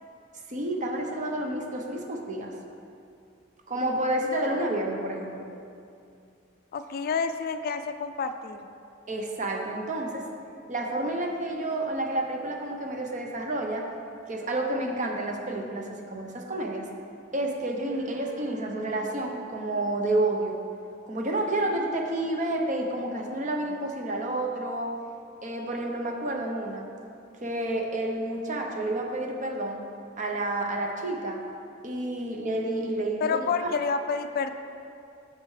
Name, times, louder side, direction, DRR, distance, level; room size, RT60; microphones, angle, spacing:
voice 1, 0.5-2.5 3.7-5.5 9.1-10.2 10.7-13.9 14.3-16.9 17.3-20.6 21.1-24.9 25.4-26.9 27.4-29.8 30.2-31.4 31.8-33.7, right 1 dB, 40° right, 2 dB, 0.8 m, -30 dB
voice 2, 6.7-8.7 33.2-34.5, left 5 dB, 50° left, 9 dB, 0.3 m, -29 dB
8.9 x 6.6 x 3.2 m, 2.5 s
head